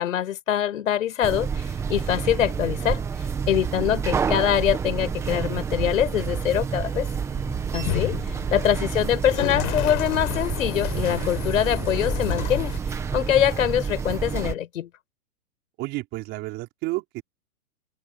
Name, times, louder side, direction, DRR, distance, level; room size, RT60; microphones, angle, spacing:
voice 1, 0.0-3.0 3.5-7.1 7.7-8.1 8.5-14.9, left 10 dB, 55° left, 5.6 m, -24 dB
sound 1, 1.2-14.5, right 6 dB, 5° right, 1.2 m, -29 dB
sound 2, 4.4-12.8, left 29 dB, 30° left, 5.9 m, -33 dB
voice 2, 7.6-8.2 15.8-17.2, right 20 dB, 25° right, 5.3 m, -32 dB
open air
hypercardioid pair, 160°, 47 cm